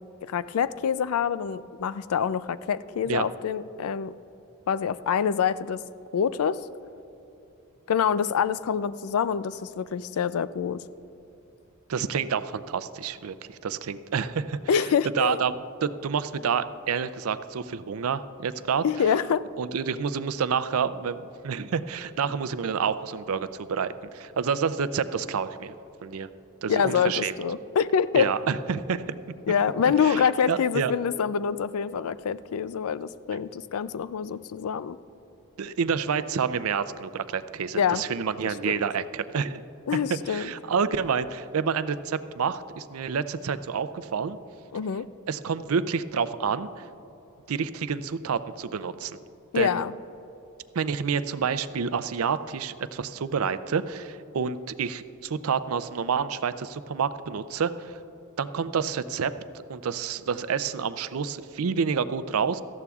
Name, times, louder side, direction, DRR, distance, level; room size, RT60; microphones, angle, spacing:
voice 1, 0.3-4.1 4.7-5.8 6.1-6.6 7.9-10.8 14.7-15.4 18.8-19.5 26.7-28.3 29.5-35.0 37.7-38.0 38.4-38.8 39.9-40.5 44.7-45.1 49.5-49.9, left 7 dB, 85° left, 16 dB, 0.4 m, -26 dB
voice 2, 11.9-14.6 15.2-15.5 15.8-18.8 19.6-25.7 26.0-26.3 26.6-27.3 28.2-29.0 30.0-30.9 35.6-39.6 40.1-44.4 45.3-46.8 47.5-49.2 49.5-49.8 50.7-58.0 58.4-59.3 59.7-62.6, right 6 dB, 80° right, 13 dB, 0.5 m, -28 dB
18.0 x 14.0 x 2.4 m, 3.0 s
head